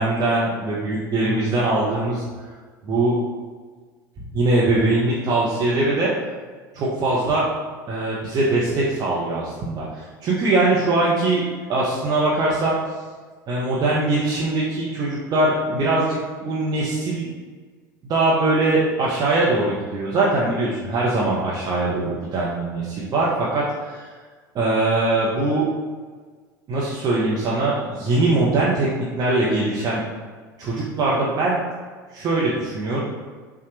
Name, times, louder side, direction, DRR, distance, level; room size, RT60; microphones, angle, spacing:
voice 1, 0.0-2.5 2.8-3.1 4.2-6.1 6.7-7.4 7.9-11.4 11.7-12.7 13.5-17.3 18.0-24.1 24.5-25.6 26.7-30.0 30.6-31.6 32.1-33.0, right 2 dB, 35° right, -6 dB, 0.8 m, -22 dB
5.7 x 2.4 x 3.0 m, 1.5 s
figure-of-eight pair, 75°, 11 cm